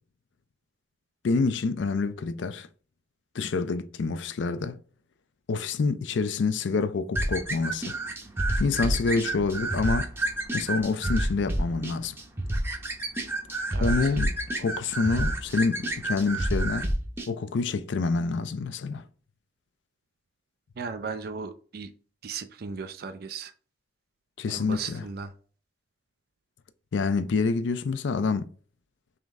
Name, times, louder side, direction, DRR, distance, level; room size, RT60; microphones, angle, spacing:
voice 1, 1.2-2.7 3.3-4.8 5.5-7.9 8.6-10.1 10.5-12.1 13.8-14.3 14.6-16.9 17.3-19.0 24.4-25.0 26.9-28.5, left 4 dB, 75° left, 0.4 m, -27 dB
sound 1, 7.2-17.3, right 1 dB, 15° right, 0.7 m, -29 dB
voice 2, 13.7-14.2 20.8-21.9 22.2-23.5 24.5-25.3, right 5 dB, 55° right, 0.4 m, -37 dB
3.8 x 3.1 x 3.4 m
head